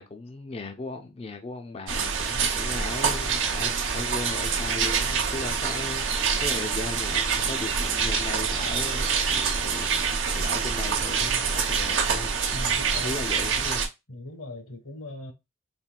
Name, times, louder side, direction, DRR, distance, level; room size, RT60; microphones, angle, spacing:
voice 1, 0.0-9.9 10.3-12.3 13.0-13.8, left 3 dB, 30° left, 0.4 m, -37 dB
sound 1, 1.9-13.9, right 6 dB, 60° right, 0.8 m, -26 dB
voice 2, 12.5-13.2 14.1-15.3, left 1 dB, 80° left, 1.3 m, -39 dB
4.3 x 3.3 x 2.2 m
head